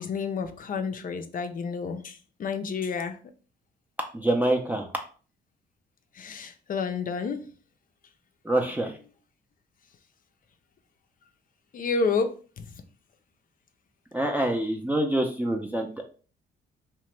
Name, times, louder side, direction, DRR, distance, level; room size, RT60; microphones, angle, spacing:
voice 1, 0.0-3.2 6.2-7.4 11.7-12.7, left 5 dB, 45° left, 0.5 m, -30 dB
voice 2, 4.1-4.9 8.5-8.9 14.1-16.0, right 1 dB, 10° right, 0.5 m, -26 dB
2.8 x 2.2 x 3.1 m
cardioid pair, 90°, 20 cm